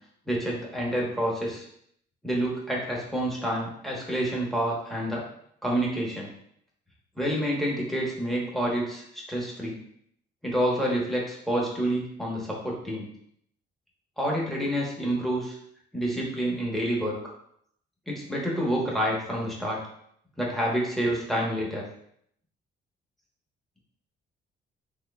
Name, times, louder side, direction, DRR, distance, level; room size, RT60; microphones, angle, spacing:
voice 1, 0.3-1.6 2.2-5.2 5.6-6.3 7.2-9.8 10.4-13.1 14.2-15.6 15.9-17.2 18.1-19.8 20.4-21.8, right 1 dB, ahead, -4 dB, 1.0 m, -28 dB
3.7 x 3.0 x 2.3 m, 0.69 s
cardioid pair, 90°, 20 cm